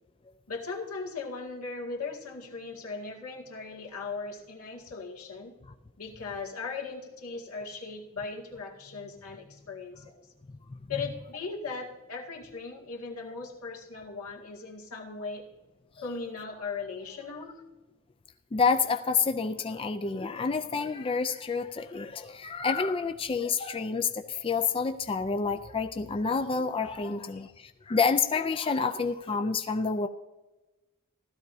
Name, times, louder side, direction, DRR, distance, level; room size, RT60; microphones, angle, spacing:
voice 1, 0.5-5.6 6.0-10.3 10.9-15.4 16.0-17.6 27.0-27.5, left 4 dB, 85° left, -2 dB, 2.1 m, -38 dB
voice 2, 18.5-30.1, left 5 dB, 25° left, 7 dB, 0.4 m, -28 dB
16.0 x 13.0 x 2.7 m, 1.1 s
head